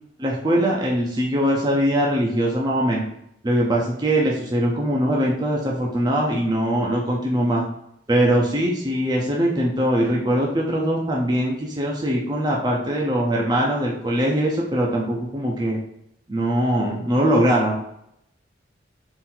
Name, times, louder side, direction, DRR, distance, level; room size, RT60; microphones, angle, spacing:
voice 1, 0.2-3.1 3.4-7.7 8.1-15.8 16.3-17.8, right 1 dB, 20° right, -2 dB, 0.5 m, -21 dB
3.8 x 2.6 x 4.3 m, 0.77 s
head